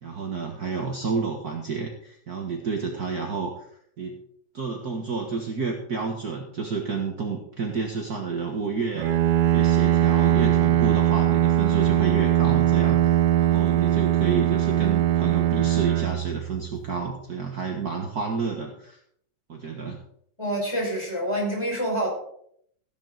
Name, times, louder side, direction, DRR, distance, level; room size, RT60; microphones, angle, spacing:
voice 1, 0.0-3.7 4.0-4.2 4.5-9.1 9.5-19.0 19.5-20.0, right 4 dB, 45° right, 1 dB, 1.8 m, -30 dB
Bowed string instrument, 9.0-16.9, right 12 dB, 70° right, 1.1 m, -21 dB
voice 2, 20.4-22.1, right 1 dB, 10° left, -3 dB, 5.4 m, -27 dB
16.0 x 11.0 x 3.9 m, 0.67 s
omnidirectional pair, 2.4 m